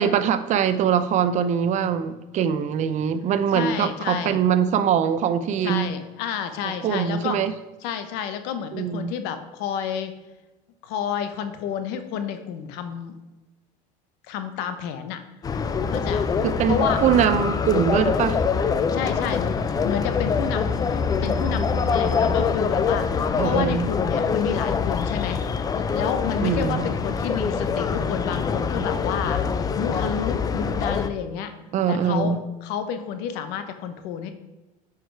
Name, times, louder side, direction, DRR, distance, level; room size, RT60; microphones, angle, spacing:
voice 1, 0.0-5.9 6.6-7.5 8.7-9.1 16.4-18.4 23.4-23.9 26.4-26.8 31.7-32.4, right 8 dB, 45° right, 13 dB, 0.5 m, -22 dB
voice 2, 3.5-4.4 5.6-7.4 7.8-10.1 10.8-13.2 14.3-15.2 15.9-16.3 16.7-17.0 18.9-25.5 25.8-31.5 31.9-34.3, left 8 dB, 70° left, 9 dB, 0.9 m, -30 dB
sound 1, 15.4-31.1, left 5 dB, 20° left, 0.4 m, -24 dB
8.8 x 5.0 x 4.6 m, 1.1 s
cardioid pair, 130°, 18 cm